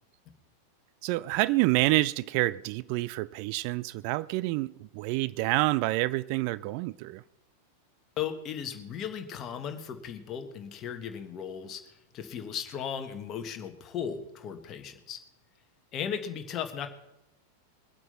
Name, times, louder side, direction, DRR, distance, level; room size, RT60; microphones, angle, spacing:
voice 1, 1.0-7.2, right 19 dB, 45° right, 0.4 m, -28 dB
voice 2, 8.2-15.2 15.9-16.9, left 8 dB, 30° left, 1.4 m, -36 dB
22.0 x 7.8 x 5.6 m
figure-of-eight pair, 90°, 0 cm